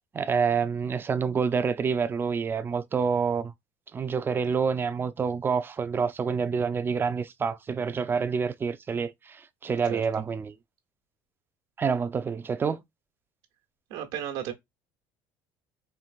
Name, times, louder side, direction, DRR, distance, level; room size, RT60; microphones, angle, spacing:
voice 1, 0.1-3.5 3.9-10.5 11.8-12.8, right 6 dB, 25° right, 0.5 m, -27 dB
voice 2, 9.9-10.2 13.9-14.5, right 10 dB, 90° right, 1.1 m, -34 dB
4.5 x 2.5 x 2.4 m
supercardioid pair, 105°, 9 cm